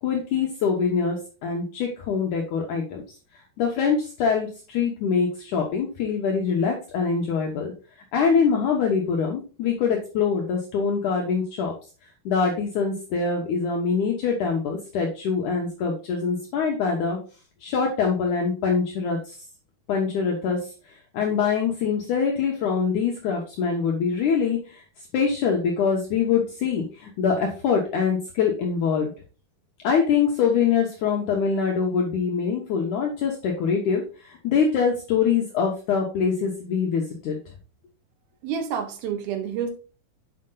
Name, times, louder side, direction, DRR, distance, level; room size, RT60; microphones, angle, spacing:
voice 1, 0.0-3.0 3.6-7.7 8.1-11.7 12.3-17.2 17.6-19.3 19.9-20.6 21.1-24.8 25.1-29.1 29.8-37.4, left 6 dB, 65° left, 0 dB, 2.2 m, -24 dB
voice 2, 38.4-39.7, right 7 dB, 75° right, 7 dB, 2.8 m, -28 dB
7.7 x 5.1 x 3.8 m, 0.36 s
omnidirectional pair, 4.4 m